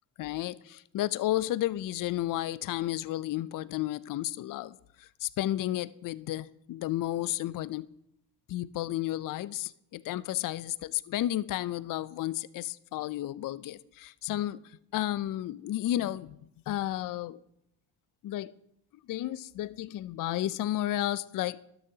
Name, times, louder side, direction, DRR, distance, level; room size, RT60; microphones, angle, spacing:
voice 1, 0.2-7.9 8.5-14.6 14.9-16.4 16.7-17.4 18.2-18.5 19.1-21.7, left 14 dB, 45° left, 18 dB, 0.4 m, -32 dB
12.5 x 7.1 x 2.8 m, 0.76 s
supercardioid pair, 55°, 46 cm